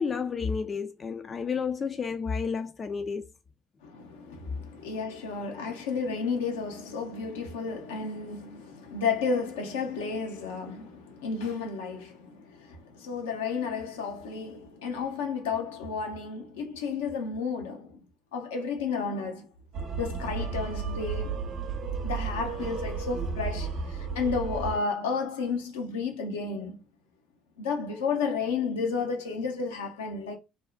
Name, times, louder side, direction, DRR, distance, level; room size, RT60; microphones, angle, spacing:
voice 1, 0.0-3.3, left 5 dB, 35° left, 0.4 m, -31 dB
voice 2, 3.8-18.0 18.3-19.5 20.0-21.5 22.0-26.8 27.6-30.4, left 5 dB, 80° left, 0.6 m, -32 dB
sound 1, 19.7-24.8, right 5 dB, 55° right, 0.7 m, -33 dB
2.5 x 2.0 x 2.4 m
hypercardioid pair, 60°, 0 cm